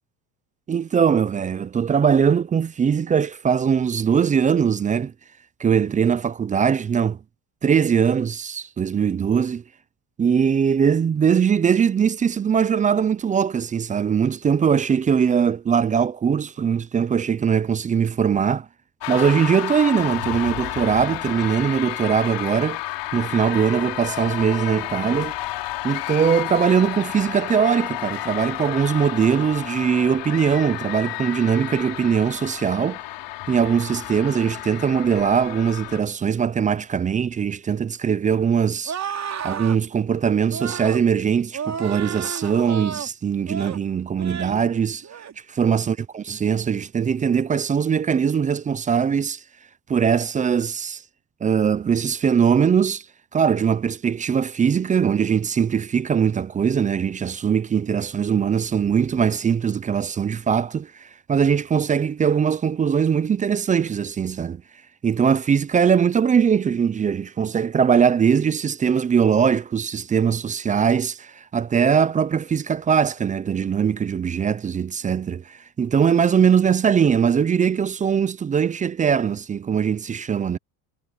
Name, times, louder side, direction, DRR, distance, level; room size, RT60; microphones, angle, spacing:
voice 1, 0.7-5.1 5.6-7.2 7.6-9.6 10.2-18.7 19.1-22.8 23.1-25.3 25.8-33.0 33.5-38.9 39.4-45.0 45.5-49.4 49.9-51.0 51.4-53.0 53.3-64.6 65.0-80.6, right 7 dB, 20° right, 0.4 m, -21 dB
sound 1, 19.0-36.0, left 16 dB, 65° left, 4.4 m, -31 dB
sound 2, 38.9-39.8 40.5-41.0 41.5-43.1 43.5-43.8 44.2-44.6 45.0-45.3, right 7 dB, 35° right, 3.3 m, -31 dB
supercardioid pair, 115°, 46 cm